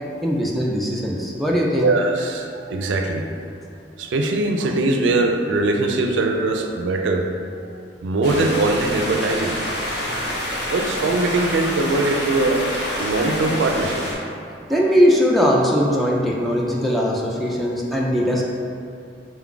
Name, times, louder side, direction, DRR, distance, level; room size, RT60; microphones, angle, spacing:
voice 1, 0.2-1.9 14.7-18.4, equal, ahead, -3 dB, 0.3 m, -20 dB
voice 2, 1.8-3.2 4.0-7.3 8.0-9.6 10.6-12.6 13.0-14.3, right 2 dB, 85° right, 4 dB, 0.3 m, -21 dB
sound 1, 8.2-14.1, equal, 65° left, 0.9 m, -27 dB
3.9 x 2.3 x 3.7 m, 2.4 s
head